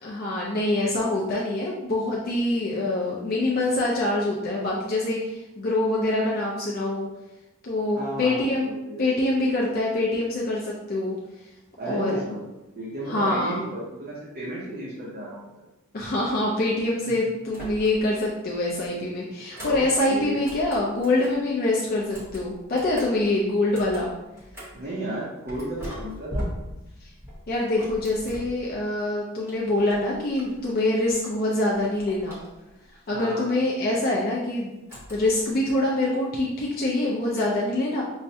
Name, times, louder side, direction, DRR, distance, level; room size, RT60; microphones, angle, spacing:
voice 1, 0.0-7.1 7.6-8.7 9.0-11.2 11.9-12.2 13.1-13.6 15.9-24.1 27.5-32.4 33.1-34.7 35.1-38.0, left 2 dB, 40° left, -4 dB, 0.4 m, -25 dB
voice 2, 7.9-9.0 11.8-12.4 12.8-15.4 19.6-20.4 24.7-26.5 33.1-33.5, right 1 dB, 40° right, -7 dB, 0.7 m, -33 dB
sound 1, 17.5-18.2 18.5-21.5 22.0-24.9 25.5-29.0 29.4-31.2 31.5-32.9 34.9-35.5, equal, 10° right, 0.9 m, -40 dB
5.4 x 2.1 x 2.7 m, 0.98 s
head